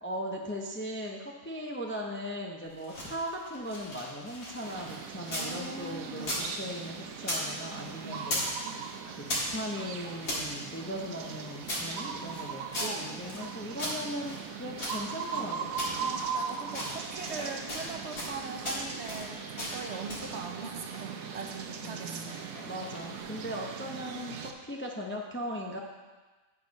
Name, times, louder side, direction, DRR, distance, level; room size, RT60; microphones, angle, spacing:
voice 1, 0.0-8.8 9.1-15.7 16.0-16.2 21.8-25.8, equal, 15° left, -1 dB, 0.5 m, -38 dB
sound 1, 2.7-5.5 5.8-7.5 7.7-8.6 8.8-10.4 11.0-13.4 13.8-15.4 15.8-16.3 16.7-17.4 17.7-18.3 18.6-19.3 19.6-20.3, left 1 dB, 85° left, 2.4 m, -37 dB
sound 2, 4.6-24.5, right 6 dB, 85° right, 1.1 m, -40 dB
voice 2, 5.4-6.3 8.0-8.2 12.8-13.1 16.0-22.6, right 4 dB, 55° right, 2 dB, 1.1 m, -41 dB
sound 3, 15.7-23.2, left 1 dB, 45° left, 1.5 m, -52 dB
9.3 x 5.4 x 5.2 m, 1.3 s
omnidirectional pair, 1.4 m